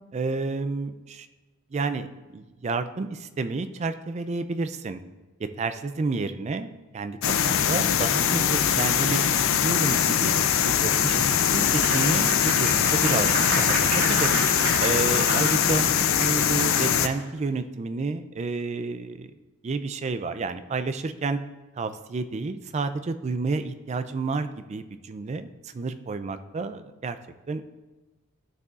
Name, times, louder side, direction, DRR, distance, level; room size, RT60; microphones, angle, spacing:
voice 1, 0.1-1.3 1.7-2.1 2.3-5.0 5.4-10.3 10.6-14.3 14.8-15.9 16.2-19.3 19.6-21.4 21.8-27.2 27.5-27.6, right 3 dB, 30° right, 11 dB, 0.3 m, -30 dB
sound 1, 7.2-17.1, left 8 dB, 60° left, 0.4 m, -22 dB
Applause, 11.7-17.2, right 2 dB, 75° right, 2.3 m, -31 dB
12.0 x 6.7 x 2.4 m, 1.2 s
head